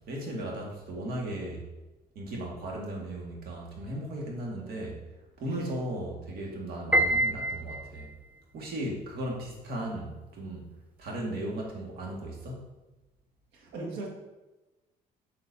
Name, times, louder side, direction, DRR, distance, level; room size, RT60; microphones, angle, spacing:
voice 1, 0.1-1.6 2.2-5.0 5.4-8.1 8.5-10.6 11.0-12.7, right 1 dB, 65° right, -1 dB, 1.9 m, -36 dB
Piano, 6.9-8.2, right 1 dB, 10° right, 0.6 m, -26 dB
voice 2, 13.5-14.1, right 3 dB, 85° right, -1 dB, 1.8 m, -38 dB
6.9 x 6.4 x 2.8 m, 1.1 s
cardioid pair, 110°, 17 cm